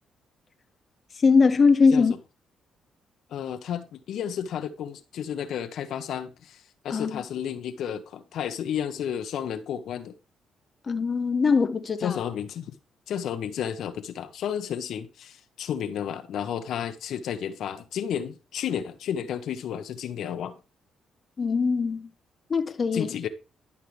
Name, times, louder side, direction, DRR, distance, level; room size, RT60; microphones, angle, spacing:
voice 1, 1.2-2.1 6.9-7.2 10.9-12.2 21.4-22.1 22.5-23.1, left 5 dB, 40° left, 0.8 m, -21 dB
voice 2, 3.3-10.1 12.0-12.7 13.1-20.5 22.9-23.3, left 9 dB, 75° left, 1.0 m, -32 dB
12.0 x 5.6 x 3.4 m
cardioid pair, 90°, 0 cm